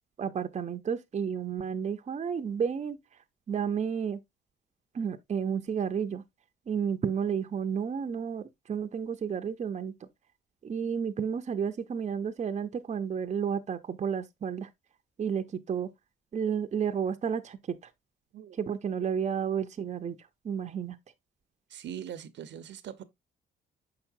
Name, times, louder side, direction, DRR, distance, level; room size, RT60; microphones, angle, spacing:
voice 1, 0.2-3.0 3.5-4.2 4.9-6.2 6.7-9.9 10.6-14.7 15.2-15.9 16.3-17.6 18.6-20.2 20.4-21.0, right 7 dB, 35° right, 0.6 m, -31 dB
voice 2, 21.7-23.0, right 9 dB, 65° right, 0.7 m, -41 dB
6.4 x 5.8 x 2.6 m
cardioid pair, 90°, 20 cm